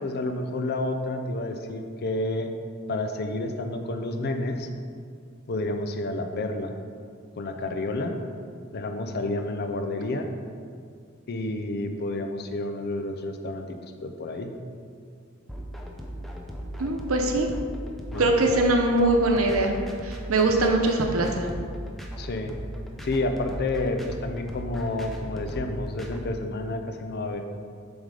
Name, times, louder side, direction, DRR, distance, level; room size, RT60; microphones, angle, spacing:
voice 1, 0.0-2.5 2.9-4.7 5.5-6.7 7.3-8.2 8.7-10.3 11.3-14.5 18.1-18.3 22.2-22.5 23.0-27.4, left 2 dB, 50° left, 6 dB, 0.5 m, -30 dB
sound 1, 15.5-26.2, equal, ahead, 0.5 m, -37 dB
voice 2, 16.8-17.5 18.2-19.7 20.0-21.5, right 2 dB, 85° right, 3 dB, 0.8 m, -22 dB
7.3 x 3.6 x 4.9 m, 2.2 s
head